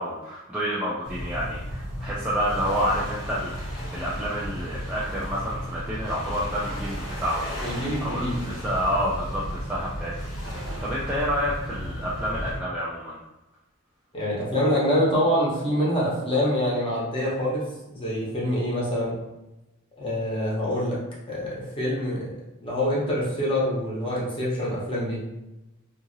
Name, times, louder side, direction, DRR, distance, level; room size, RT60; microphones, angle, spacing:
voice 1, 0.0-13.2, equal, 5° right, -7 dB, 0.3 m, -29 dB
sound 1, 1.0-12.6, equal, 85° left, 1.2 m, -34 dB
voice 2, 7.6-8.4 14.1-17.6 17.9-19.2 20.0-21.0 21.3-22.3 22.6-25.2, equal, 25° left, -6 dB, 0.9 m, -25 dB
2.8 x 2.6 x 2.6 m, 0.99 s
head